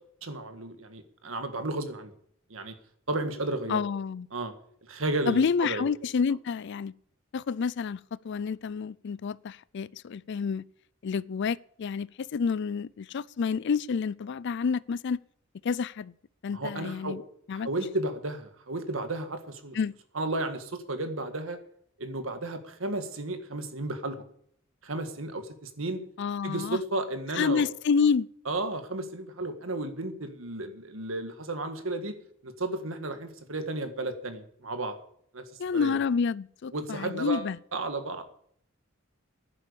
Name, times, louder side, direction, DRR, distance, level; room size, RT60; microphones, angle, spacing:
voice 1, 0.2-2.1 2.5-2.7 3.1-3.8 4.3-4.5 4.8-5.8 16.5-17.2 17.5-19.8 20.1-21.6 22.0-24.2 24.8-26.0 26.4-27.6 28.4-32.1 32.4-35.0 35.3-35.4 35.7-36.0 36.7-38.2, right 2 dB, 80° right, 1.7 m, -33 dB
voice 2, 3.7-4.3 5.3-6.9 7.3-10.6 11.0-15.2 15.6-16.1 16.4-17.2 17.5-17.7 19.7-19.9 26.2-26.8 27.3-28.3 35.6-37.6, left 5 dB, 60° left, 0.4 m, -29 dB
10.5 x 9.9 x 6.9 m
head